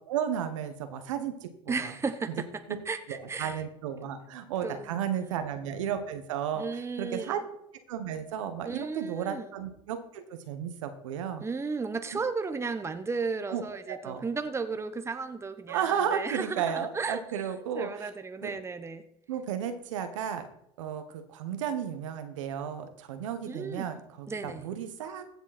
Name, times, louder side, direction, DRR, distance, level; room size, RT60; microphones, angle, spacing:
voice 1, 0.1-1.8 2.7-2.8 3.1-7.4 7.9-11.4 12.1-12.2 13.5-13.6 13.9-14.3 15.7-18.1 18.4-18.5 19.3-20.5 20.8-25.4, right 8 dB, 85° right, 9 dB, 1.4 m, -33 dB
voice 2, 1.7-2.5 2.9-3.6 4.6-4.9 5.2-5.3 6.6-7.4 8.6-9.5 11.4-17.2 17.7-19.0 23.5-24.0 24.3-24.7, right 4 dB, 15° right, 9 dB, 1.0 m, -34 dB
15.5 x 7.2 x 4.3 m, 0.74 s
supercardioid pair, 90°, 16 cm